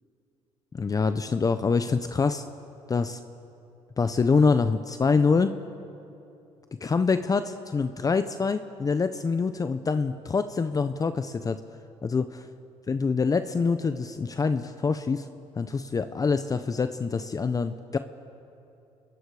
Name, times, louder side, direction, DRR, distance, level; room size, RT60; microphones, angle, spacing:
voice 1, 0.7-2.4 2.9-3.2 4.0-5.6 6.8-11.6 12.0-12.3 12.9-15.3 15.6-18.0, left 4 dB, 30° left, 10 dB, 0.7 m, -25 dB
27.5 x 21.0 x 4.9 m, 2.8 s
cardioid pair, 85°, 12 cm